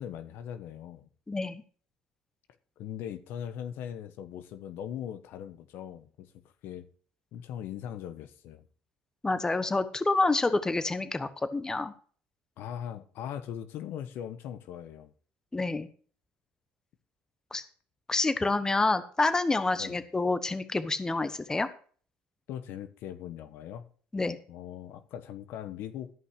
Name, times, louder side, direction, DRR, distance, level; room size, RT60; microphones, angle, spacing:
voice 1, 0.0-1.1 2.8-6.9 7.3-8.6 12.6-15.1 19.7-20.0 22.5-23.9 24.5-26.1, left 9 dB, 70° left, 1.2 m, -40 dB
voice 2, 1.3-1.6 9.2-11.9 15.5-15.9 17.5-17.6 18.1-21.7 24.1-24.4, left 3 dB, 15° left, 1.1 m, -28 dB
13.0 x 5.7 x 6.5 m
cardioid pair, 95°, 4 cm